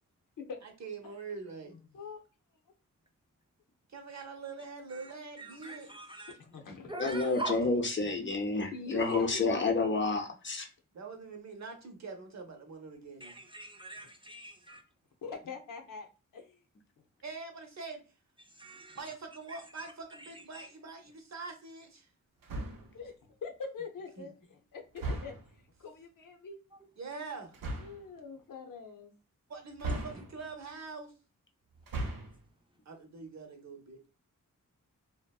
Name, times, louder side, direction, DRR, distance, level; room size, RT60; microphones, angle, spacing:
voice 1, 0.6-1.7 3.9-5.9 8.0-8.1 8.9-9.1 9.4-9.6 10.9-13.4 17.2-18.0 18.9-22.1 24.2-24.3 27.0-27.5 29.5-31.1 32.9-34.1, right 4 dB, 55° right, 0.7 m, -44 dB
voice 2, 1.7-2.2 6.3-6.9 8.7-9.7 15.2-16.6 22.9-25.3 25.8-26.6 27.8-29.1, left 5 dB, 75° left, 0.7 m, -44 dB
voice 3, 5.4-6.3 6.9-7.5 13.2-14.8 18.6-19.0 19.5-19.6 20.5-20.7, right 1 dB, 15° right, 0.5 m, -42 dB
voice 4, 7.0-10.7, left 3 dB, 35° left, 0.6 m, -29 dB
sound 1, 22.4-23.0 25.0-25.6 27.5-28.1 29.8-30.6 31.8-32.5, right 2 dB, 85° right, 0.6 m, -37 dB
2.6 x 2.1 x 2.2 m
cardioid pair, 55°, 33 cm